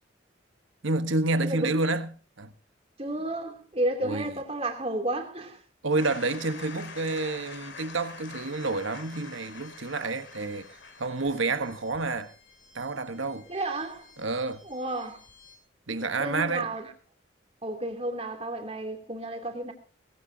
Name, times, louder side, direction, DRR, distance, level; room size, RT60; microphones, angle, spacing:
voice 1, 0.8-2.1 2.4-2.5 4.0-4.4 5.8-10.7 11.0-12.3 12.7-13.5 14.2-14.6 15.9-16.7, right 3 dB, 80° right, 1.3 m, -29 dB
voice 2, 3.0-5.6 13.5-14.1 14.7-15.2 16.2-16.9 17.6-19.7, right 1 dB, 30° right, 2.9 m, -32 dB
sound 1, 6.0-15.6, left 4 dB, 70° left, 3.0 m, -47 dB
19.0 x 16.5 x 2.8 m
head